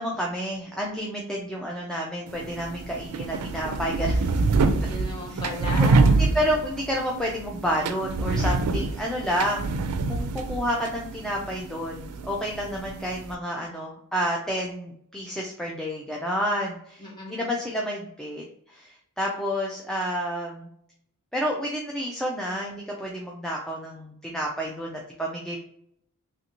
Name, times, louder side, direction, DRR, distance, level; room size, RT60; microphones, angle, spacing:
voice 1, 0.0-4.4 5.8-5.9 6.2-9.7 10.1-20.7 21.3-25.6, equal, ahead, -2 dB, 0.3 m, -30 dB
sound 1, 2.3-13.3, right 3 dB, 80° right, 0.4 m, -26 dB
voice 2, 4.6-6.6 17.0-17.5, left 2 dB, 20° left, -3 dB, 1.0 m, -36 dB
3.3 x 2.6 x 2.8 m, 0.70 s
head